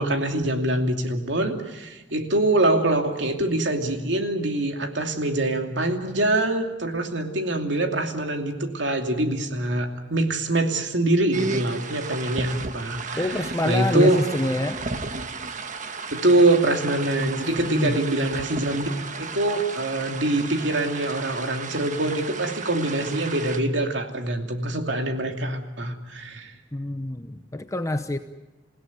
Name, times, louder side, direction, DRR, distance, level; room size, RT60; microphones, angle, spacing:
voice 1, 0.0-13.3 13.6-14.2 16.1-18.8 19.1-26.5, right 2 dB, 75° right, 4 dB, 2.7 m, -24 dB
sound 1, 11.3-23.6, right 4 dB, 45° right, 1.3 m, -34 dB
voice 2, 13.2-14.8 17.4-18.0 26.7-28.2, left 1 dB, 15° left, 8 dB, 0.8 m, -26 dB
28.0 x 17.0 x 9.2 m, 1.1 s
head